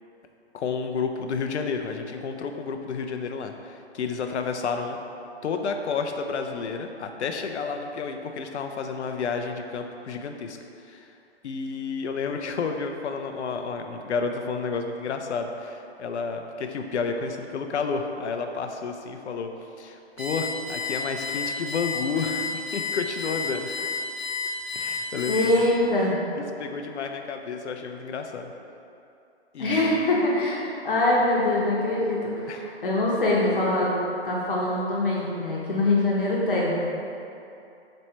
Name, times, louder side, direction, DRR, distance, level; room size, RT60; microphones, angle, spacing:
voice 1, 0.5-5.0 5.4-10.6 10.9-11.1 11.4-19.5 19.8-23.7 24.7-25.7 26.4-28.5 29.5-30.1 32.5-32.6, left 5 dB, 80° left, 5 dB, 0.5 m, -31 dB
Alarm, 20.2-25.8, left 4 dB, 25° right, 1.0 m, -31 dB
voice 2, 25.3-26.2 29.6-33.9 34.2-36.7, left 2 dB, 50° left, -5 dB, 0.9 m, -23 dB
4.3 x 3.1 x 2.9 m, 2.7 s
hypercardioid pair, 175°, 34 cm